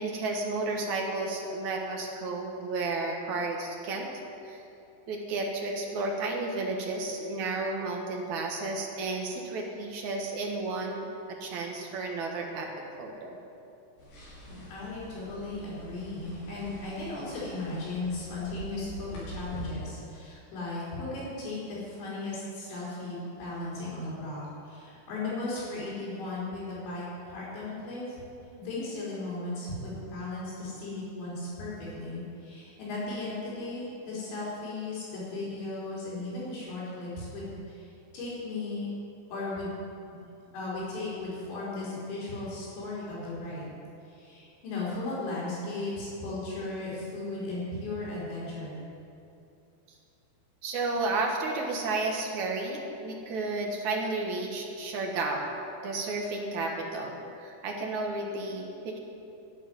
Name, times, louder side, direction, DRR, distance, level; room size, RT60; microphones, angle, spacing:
voice 1, 0.0-4.1 4.4-4.6 5.1-11.1 11.4-12.7 13.0-13.4 50.6-55.5 55.8-59.0, right 3 dB, 60° right, 0 dB, 2.2 m, -32 dB
sound 1, 14.0-19.7, equal, 50° left, 5.7 m, -45 dB
voice 2, 14.7-28.2 28.6-38.9 39.3-39.7 40.5-43.8 44.1-48.8, left 2 dB, 90° left, -8 dB, 6.1 m, -36 dB
11.5 x 9.5 x 9.6 m, 2.7 s
omnidirectional pair, 5.0 m